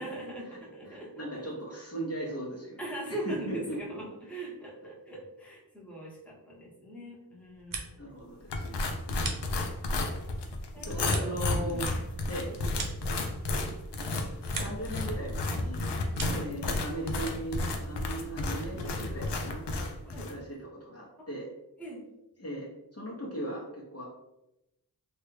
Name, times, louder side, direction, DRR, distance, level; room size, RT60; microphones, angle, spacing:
voice 1, 0.0-1.5 2.8-8.0 10.7-11.3 11.6-11.9 12.5-12.9 16.2-16.4 20.0-20.3 21.8-22.0, right 1 dB, 5° left, -5 dB, 1.1 m, -41 dB
voice 2, 0.9-2.8 3.3-3.8 8.0-9.7 10.8-11.9 12.3-12.5 14.5-15.9 16.3-19.6 20.2-21.5 22.4-24.1, right 1 dB, 35° left, -5 dB, 0.9 m, -38 dB
sound 1, 7.4-8.2 8.5-10.0 10.4-13.7 14.0-15.0 15.3-16.6, right 3 dB, 55° right, 0.7 m, -42 dB
sound 2, 8.5-20.4, left 2 dB, 85° left, 0.5 m, -32 dB
3.0 x 2.4 x 3.2 m, 0.91 s
cardioid pair, 50°, 40 cm